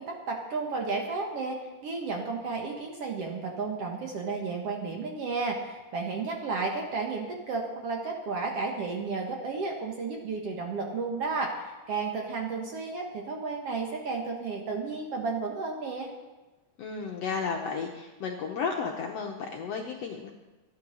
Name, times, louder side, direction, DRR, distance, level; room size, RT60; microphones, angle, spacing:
voice 1, 0.0-16.1, right 4 dB, 55° right, 1 dB, 1.9 m, -33 dB
voice 2, 16.8-20.3, left 5 dB, 70° left, 1 dB, 1.6 m, -33 dB
14.0 x 10.0 x 6.3 m, 1.2 s
omnidirectional pair, 3.9 m